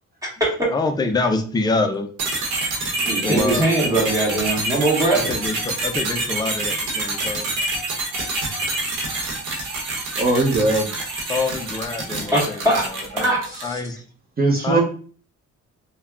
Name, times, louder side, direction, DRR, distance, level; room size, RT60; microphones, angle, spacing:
voice 1, 0.7-2.1 3.2-4.1 5.1-7.5 11.3-12.8 13.1-13.3 13.6-14.0 14.6-14.8, left 3 dB, 15° left, 6 dB, 0.3 m, -25 dB
sound 1, 2.2-13.8, right 2 dB, 90° right, 1.0 m, -27 dB
voice 2, 3.0-5.3 12.3-12.9 13.2-13.8, right 1 dB, 10° right, -5 dB, 1.5 m, -21 dB
voice 3, 10.2-10.9 14.4-14.8, right 2 dB, 30° right, 0 dB, 0.7 m, -19 dB
3.2 x 2.2 x 2.3 m, 0.42 s
cardioid pair, 90°, 30 cm